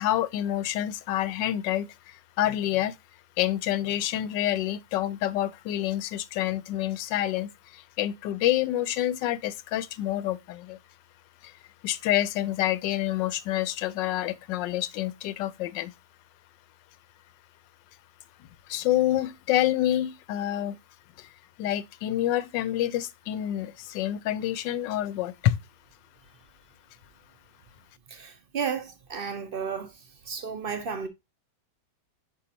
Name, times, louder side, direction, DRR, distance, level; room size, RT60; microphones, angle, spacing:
voice 1, 0.0-3.0 3.4-10.8 11.4-11.5 11.8-15.9 18.7-20.8 21.2-21.3 21.6-25.6, left 13 dB, 85° left, 1.2 m, -28 dB
voice 2, 28.1-29.9 30.3-31.1, right 6 dB, 55° right, 0.6 m, -33 dB
7.6 x 5.0 x 2.8 m
omnidirectional pair, 1.9 m